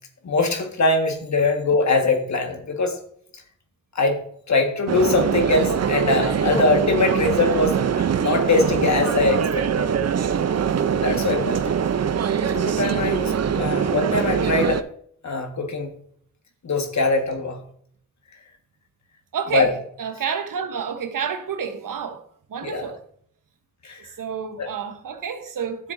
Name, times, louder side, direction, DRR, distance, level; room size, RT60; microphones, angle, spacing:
voice 1, 0.2-3.0 3.9-4.2 4.5-9.9 11.0-11.6 12.3-14.8 15.2-15.9 16.6-17.6 19.5-19.7 22.6-22.9 23.8-24.1 24.6-24.7, left 3 dB, 60° left, 1.7 m, -22 dB
sound 1, 4.9-14.8, right 7 dB, 50° right, 0.6 m, -23 dB
voice 2, 19.3-19.7 20.0-22.2 22.5-23.0 24.2-25.9, right 7 dB, 80° right, 1.1 m, -29 dB
11.0 x 7.1 x 2.6 m
cardioid pair, 55°, 32 cm